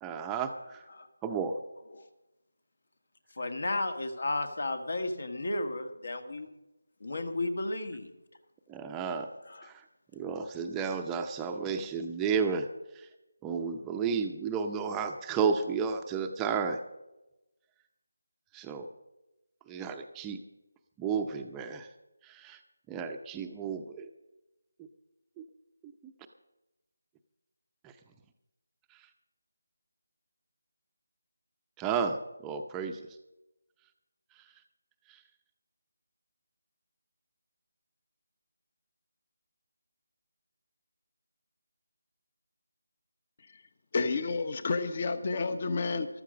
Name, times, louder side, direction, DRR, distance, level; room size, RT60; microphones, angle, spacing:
voice 1, 0.0-0.8 1.2-1.6 8.7-9.3 9.6-9.8 10.1-12.7 13.0-13.1 13.4-16.8 18.5-18.9 19.7-20.4 21.0-21.9 22.2-22.6 22.9-24.1 25.4-25.5 26.0-26.1 27.8-27.9 31.8-32.2 32.4-33.0 35.1-35.2, right 6 dB, 10° right, 0.7 m, -32 dB
voice 2, 3.4-6.5 7.0-8.1 9.6-9.7, left 2 dB, 65° left, 1.8 m, -33 dB
voice 3, 43.9-46.1, left 4 dB, 40° left, 1.1 m, -30 dB
14.0 x 13.0 x 5.2 m
figure-of-eight pair, 160°, 0 cm